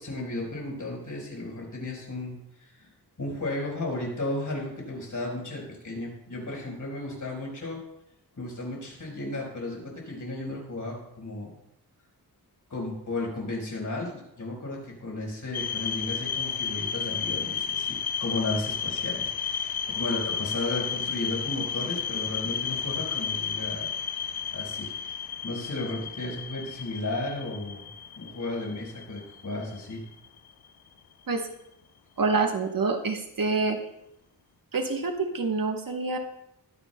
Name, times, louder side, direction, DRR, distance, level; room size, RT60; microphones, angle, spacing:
voice 1, 0.0-2.9 3.2-7.8 8.4-11.5 12.7-23.9 24.5-25.2 25.4-27.9 28.1-30.0, left 2 dB, 50° left, -1 dB, 4.4 m, -34 dB
sound 1, 15.5-30.5, left 7 dB, 75° left, 0.6 m, -32 dB
voice 2, 32.2-33.8 34.7-36.2, right 4 dB, 60° right, 4 dB, 1.1 m, -27 dB
21.0 x 9.8 x 2.2 m, 0.79 s
wide cardioid pair, 115°, 38 cm